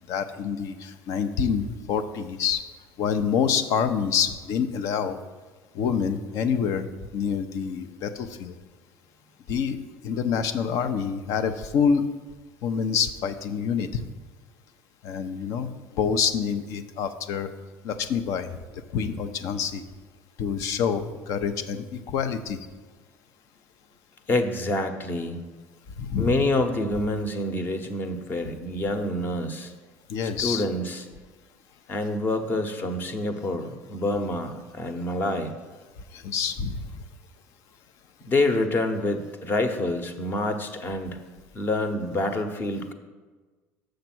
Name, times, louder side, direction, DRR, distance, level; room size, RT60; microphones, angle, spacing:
voice 1, 0.1-2.6 3.0-5.2 5.7-6.9 7.1-8.5 9.5-9.8 10.0-12.1 12.6-13.9 15.0-17.5 17.8-18.5 18.9-19.8 20.4-22.6 26.0-26.3 30.1-30.6 36.1-36.9, left 7 dB, 65° left, 10 dB, 0.7 m, -27 dB
voice 2, 24.3-25.4 26.2-29.7 30.4-31.0 31.9-35.5 38.2-41.2 41.5-42.9, left 2 dB, 35° left, 7 dB, 1.0 m, -27 dB
6.7 x 6.5 x 6.1 m, 1.3 s
supercardioid pair, 110°, 6 cm